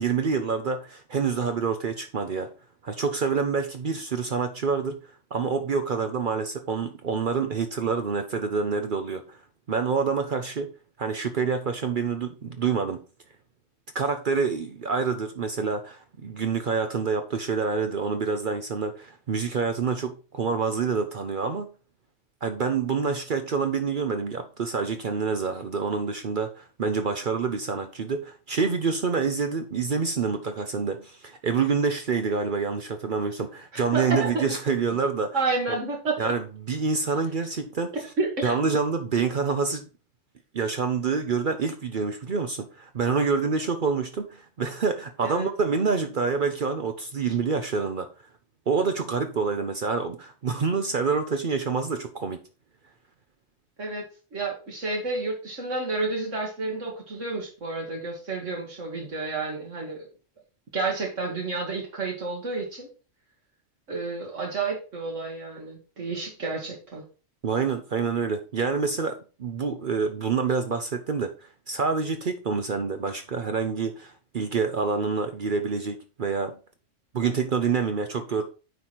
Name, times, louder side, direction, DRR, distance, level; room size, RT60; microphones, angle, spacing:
voice 1, 0.0-2.5 2.8-5.0 5.3-9.4 9.7-10.7 11.0-13.0 13.9-21.7 22.4-35.4 35.7-35.8 36.2-37.9 38.4-39.9 40.5-48.1 48.7-52.4 67.4-71.3 71.7-76.6 77.1-78.4, right 5 dB, 50° right, 0.7 m, -27 dB
voice 2, 33.7-34.4 35.3-36.3 38.2-38.5 45.2-45.5 53.8-60.1 60.7-62.9 63.9-67.0, right 3 dB, 80° right, 2.0 m, -30 dB
9.3 x 3.2 x 4.2 m
omnidirectional pair, 1.3 m